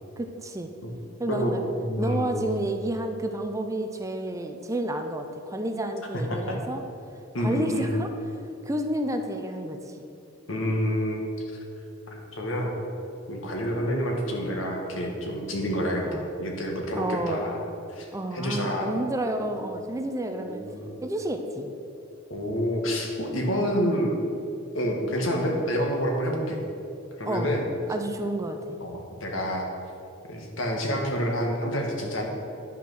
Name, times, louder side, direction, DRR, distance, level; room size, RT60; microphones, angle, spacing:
voice 1, 0.2-0.7 1.2-1.6 2.0-6.8 7.4-8.1 8.6-9.9 16.0-16.2 17.0-17.5 18.1-20.6 21.0-21.7 27.3-27.5 27.9-28.6, right 1 dB, 15° right, 5 dB, 0.5 m, -30 dB
voice 2, 1.3-2.4 6.1-6.6 7.3-7.9 10.5-11.6 12.1-12.7 13.3-17.6 17.9-19.0 19.4-19.5 20.4-21.0 22.3-24.1 24.7-26.6 27.2-27.6 28.8-29.7 30.3-32.3, equal, 75° left, 1 dB, 1.6 m, -28 dB
10.0 x 5.9 x 6.2 m, 2.7 s
head